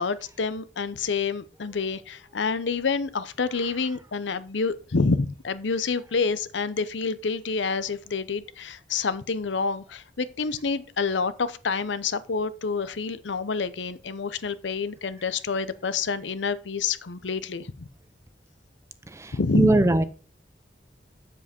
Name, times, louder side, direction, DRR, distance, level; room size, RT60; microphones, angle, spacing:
voice 1, 0.0-17.9 19.3-19.8, left 4 dB, 75° left, 0.7 m, -28 dB
voice 2, 19.1-20.0, right 1 dB, 15° right, 0.6 m, -21 dB
7.7 x 7.5 x 4.3 m
head